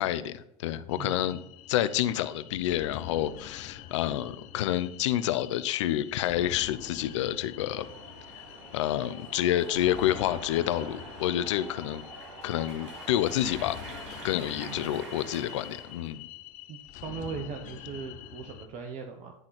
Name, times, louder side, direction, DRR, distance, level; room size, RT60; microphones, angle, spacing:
voice 1, 0.0-1.4 1.7-7.9 8.7-12.0 12.4-13.8 14.2-16.3, left 12 dB, 85° left, 14 dB, 0.6 m, -28 dB
sound 1, 0.9-18.7, left 11 dB, 60° left, 0.9 m, -46 dB
voice 2, 1.0-1.4 14.6-14.9 16.7-19.3, right 6 dB, 50° right, 5 dB, 1.1 m, -39 dB
sound 2, 7.8-16.1, right 2 dB, 80° right, 2.9 m, -45 dB
11.0 x 3.9 x 5.8 m, 0.78 s
hypercardioid pair, 90°, 15 cm